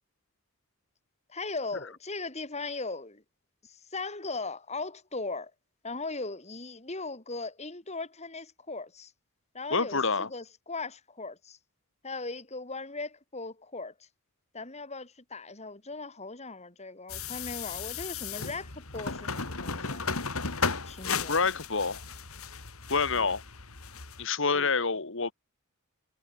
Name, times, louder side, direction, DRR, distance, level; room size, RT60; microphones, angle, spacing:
voice 1, 1.3-3.2 3.6-5.5 5.8-9.1 9.5-10.0 10.3-11.6 12.0-13.9 14.5-20.1 20.7-21.4 23.1-23.3 24.5-24.7, left 3 dB, 30° left, 3.9 m, -38 dB
voice 2, 9.7-10.3 21.3-22.0 22.9-23.4 24.2-25.3, left 4 dB, 60° left, 2.1 m, -27 dB
sound 1, 17.1-24.2, left 5 dB, 85° left, 3.3 m, -35 dB
head